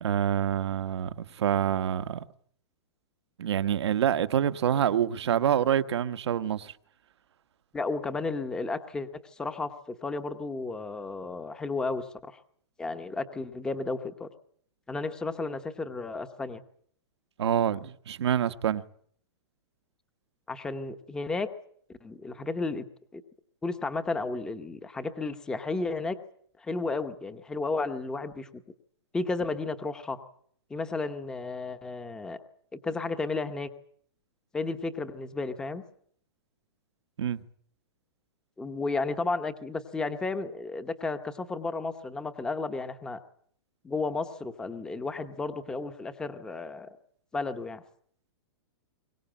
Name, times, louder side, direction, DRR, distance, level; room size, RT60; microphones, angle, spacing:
voice 1, 0.0-2.2 3.4-6.7 17.4-18.8 37.2-37.4, right 9 dB, 75° right, 1.2 m, -26 dB
voice 2, 7.7-12.1 12.3-12.4 12.8-14.3 14.9-16.6 20.5-21.5 22.0-22.8 23.1-23.2 23.6-26.2 26.6-28.5 29.1-30.2 30.7-32.4 32.7-33.7 34.5-35.8 38.6-43.2 43.8-46.9 47.3-47.8, left 3 dB, 5° left, 0.9 m, -33 dB
22.5 x 19.0 x 8.9 m
hypercardioid pair, 175°, 14 cm